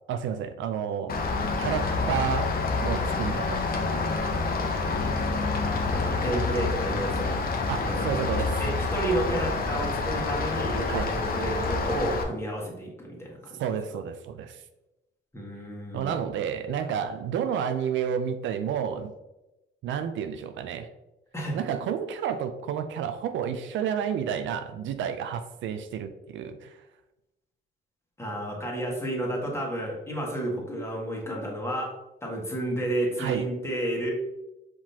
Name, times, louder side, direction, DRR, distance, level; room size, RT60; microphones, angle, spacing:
voice 1, 0.1-1.2 1.6-2.5 2.8-3.9 7.7-8.6 10.9-11.1 13.6-14.6 15.9-19.1 19.8-20.9 21.5-26.8 33.2-33.4, right 8 dB, 75° right, 9 dB, 0.4 m, -30 dB
Rain, 1.1-12.2, left 3 dB, 50° left, 0.8 m, -28 dB
voice 2, 5.9-7.3 7.9-8.0 8.3-13.6 15.3-16.2 21.3-21.6 28.2-34.1, right 1 dB, 15° left, -2 dB, 1.6 m, -31 dB
4.9 x 3.7 x 2.8 m, 0.96 s
cardioid pair, 90°, 20 cm